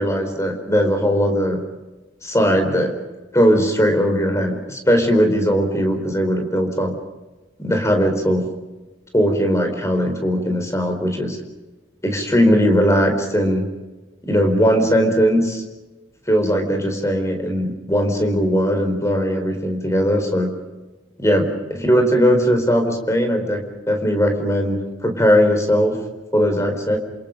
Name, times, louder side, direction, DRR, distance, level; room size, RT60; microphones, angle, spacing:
voice 1, 0.0-1.6 2.2-2.9 3.3-7.0 7.6-8.5 9.1-11.4 12.0-13.7 14.2-15.6 16.3-20.6 21.2-21.5 21.7-26.0 26.3-27.0, equal, 15° left, 4 dB, 4.3 m, -19 dB
28.5 x 28.0 x 5.2 m, 1.1 s
head